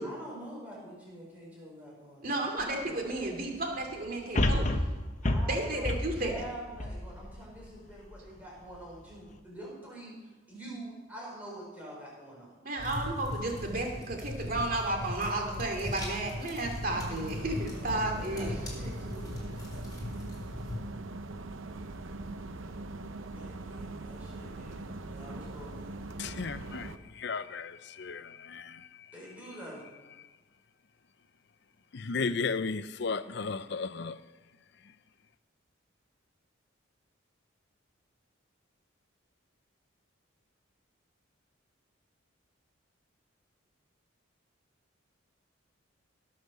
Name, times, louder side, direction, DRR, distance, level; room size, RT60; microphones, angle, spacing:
voice 1, 0.0-3.0 5.2-12.6 17.7-19.6 23.3-24.8 25.1-26.0 29.1-29.8, right 1 dB, 10° right, 5.4 m, -46 dB
voice 2, 2.2-4.7 5.4-6.5 12.6-18.6, right 2 dB, 45° right, 2.7 m, -33 dB
sound 1, 2.6-2.7 4.4-7.7 8.2-8.3, left 1 dB, 35° left, 0.9 m, -29 dB
sound 2, 12.8-20.8, left 1 dB, 20° left, 3.4 m, -39 dB
sound 3, 16.8-27.0, right 2 dB, 75° right, 0.8 m, -42 dB
voice 3, 26.2-29.1 31.9-34.2 34.8-35.0, left 4 dB, 55° left, 0.5 m, -35 dB
18.5 x 6.5 x 6.7 m
head